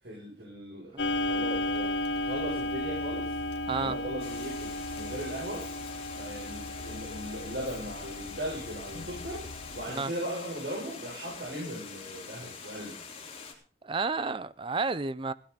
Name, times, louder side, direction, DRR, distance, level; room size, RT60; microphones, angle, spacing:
voice 1, 0.0-3.4 3.7-5.7 6.2-13.0, right 1 dB, 70° right, 7.1 m, -38 dB
Clock, 1.0-9.9, left 1 dB, 80° left, 1.0 m, -34 dB
Water, 4.2-13.5, left 5 dB, 35° left, 3.6 m, -45 dB
voice 2, 13.8-15.3, right 4 dB, 30° right, 0.6 m, -31 dB
16.5 x 12.5 x 4.1 m
head